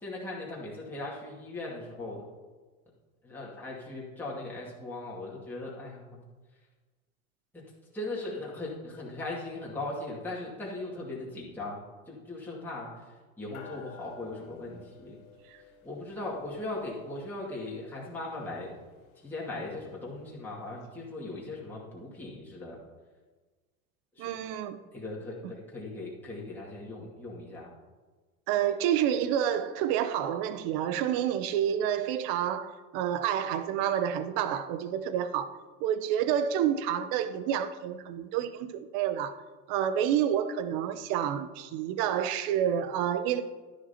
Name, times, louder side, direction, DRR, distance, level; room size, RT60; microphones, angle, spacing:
voice 1, 0.0-2.3 3.2-6.2 7.5-7.6 7.9-15.2 15.6-18.7 19.2-22.8 24.1-24.3 24.9-27.7, left 2 dB, 5° left, 2.3 m, -39 dB
sound 1, 13.5-21.2, left 5 dB, 85° left, 1.6 m, -55 dB
voice 2, 24.2-24.8 28.5-39.4 39.7-43.4, right 9 dB, 55° right, 0.8 m, -29 dB
11.5 x 10.5 x 2.9 m
hypercardioid pair, 100°, 42 cm